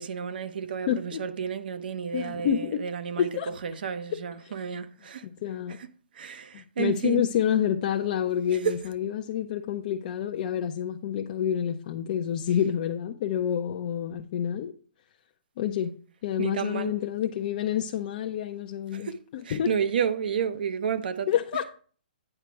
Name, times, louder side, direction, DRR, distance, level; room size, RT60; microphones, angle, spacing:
voice 1, 0.0-5.3 5.8-5.9 6.1-7.3 8.6-8.8 16.4-17.0 18.9-21.3, right 7 dB, 65° right, 0.9 m, -31 dB
voice 2, 0.9-1.2 2.1-2.8 3.2-3.5 4.1-4.2 4.4-4.5 5.4-5.8 6.5-14.7 15.6-15.9 16.2-19.1 19.5-19.7 21.3-21.6, left 9 dB, 45° left, 0.6 m, -28 dB
8.9 x 5.0 x 4.6 m
hypercardioid pair, 145°, 5 cm